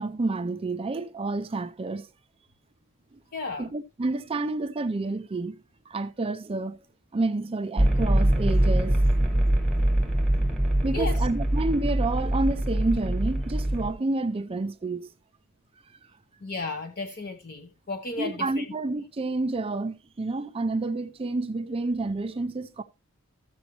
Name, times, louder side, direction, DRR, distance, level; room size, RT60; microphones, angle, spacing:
voice 1, 0.0-2.1 3.6-5.6 5.9-6.8 7.1-9.0 10.8-15.1 15.9-16.0 18.2-22.8, right 2 dB, 25° right, 0.4 m, -29 dB
voice 2, 3.3-3.7 10.9-11.3 16.4-18.7, left 3 dB, 45° left, 0.8 m, -34 dB
sound 1, 7.8-13.9, right 1 dB, ahead, 1.1 m, -23 dB
14.0 x 7.1 x 3.0 m
head